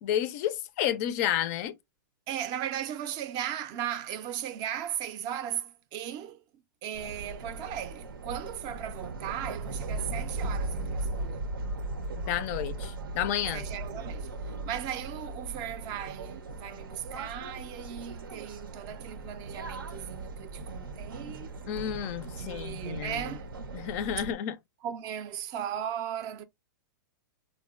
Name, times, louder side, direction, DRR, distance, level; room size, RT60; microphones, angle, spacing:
voice 1, 0.0-1.8 12.2-13.6 21.7-23.2 23.7-24.6, left 11 dB, 45° left, 0.4 m, -31 dB
voice 2, 2.3-6.4 6.8-11.5 13.5-21.5 22.3-23.5 24.8-26.4, right 10 dB, 35° right, 0.4 m, -37 dB
sound 1, 6.9-24.3, right 2 dB, 90° right, 0.5 m, -38 dB
3.9 x 2.1 x 2.4 m
hypercardioid pair, 120°, 11 cm